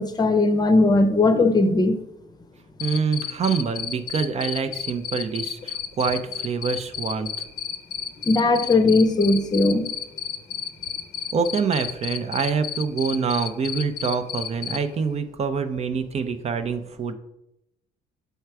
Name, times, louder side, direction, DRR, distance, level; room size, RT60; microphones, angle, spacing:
voice 1, 0.0-2.0 8.3-9.8, left 2 dB, 25° left, 9 dB, 0.7 m, -18 dB
Cricket, 2.8-14.8, left 8 dB, 70° left, 0.6 m, -31 dB
voice 2, 2.8-7.3 11.3-17.1, right 5 dB, 40° right, 9 dB, 0.6 m, -26 dB
6.8 x 4.5 x 4.7 m, 0.86 s
cardioid pair, 110°, 17 cm